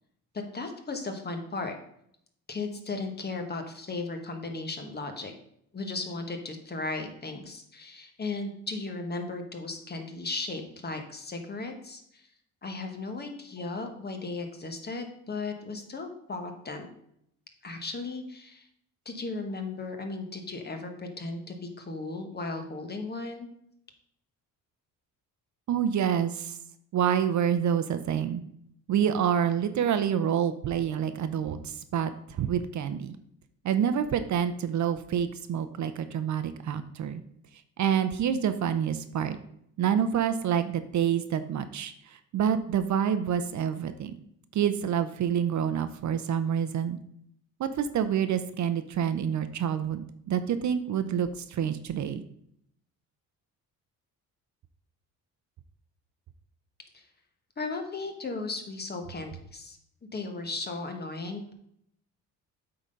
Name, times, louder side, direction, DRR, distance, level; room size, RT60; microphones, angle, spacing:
voice 1, 0.3-1.8 2.5-5.3 5.7-12.3 12.6-16.9 17.6-18.7 19.0-23.5 56.9-57.1 57.6-61.5, left 3 dB, 30° left, 5 dB, 1.2 m, -36 dB
voice 2, 25.7-26.6 26.9-28.4 28.9-33.2 33.6-37.2 37.8-39.4 39.8-44.1 44.5-47.0 47.6-52.2, right 8 dB, 55° right, 11 dB, 0.6 m, -27 dB
8.3 x 3.9 x 5.2 m, 0.72 s
cardioid pair, 115°, 35 cm